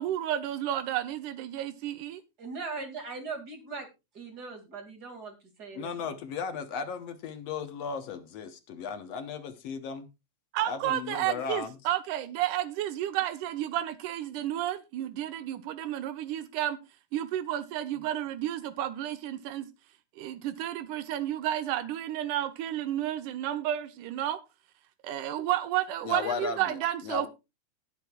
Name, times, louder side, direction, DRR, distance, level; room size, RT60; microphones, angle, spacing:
voice 1, 0.0-2.2 10.5-16.8 17.1-19.7 20.2-24.4 25.0-27.3, right 12 dB, 85° right, 2.4 m, -31 dB
voice 2, 2.4-3.9 4.1-6.1, right 4 dB, 35° right, 2.5 m, -40 dB
voice 3, 5.8-10.1 10.7-11.8 26.0-26.8 27.0-27.3, left 6 dB, 65° left, 1.9 m, -35 dB
19.0 x 8.0 x 2.3 m
omnidirectional pair, 3.6 m